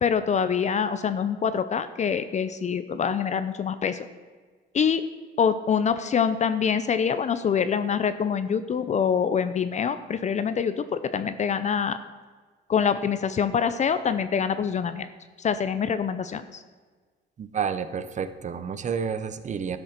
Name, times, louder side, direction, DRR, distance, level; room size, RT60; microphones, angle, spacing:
voice 1, 0.0-4.1 4.7-5.0 5.4-12.0 12.7-15.1 15.4-16.6, left 7 dB, 35° left, 12 dB, 0.5 m, -25 dB
voice 2, 17.4-19.8, right 6 dB, 35° right, 12 dB, 0.8 m, -30 dB
12.5 x 6.5 x 5.9 m, 1.5 s
cardioid pair, 125°, 20 cm